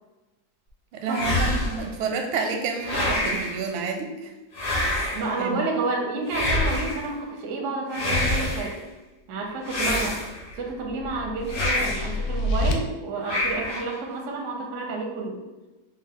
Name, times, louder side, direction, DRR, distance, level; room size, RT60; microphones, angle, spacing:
voice 1, 0.9-4.3 4.9-5.7, right 4 dB, 85° right, 4 dB, 1.4 m, -30 dB
sound 1, 1.1-1.9 2.8-3.6 4.5-5.3 6.3-7.1 7.9-8.7 9.7-10.5 11.5-12.1 13.2-13.9, left 1 dB, 50° left, 1.6 m, -26 dB
voice 2, 5.1-8.8 9.3-10.2 10.6-15.4, right 3 dB, 65° right, 1 dB, 0.7 m, -30 dB
sound 2, 10.2-12.7, left 1 dB, 75° left, 1.1 m, -29 dB
5.0 x 2.1 x 3.6 m, 1.1 s
omnidirectional pair, 2.2 m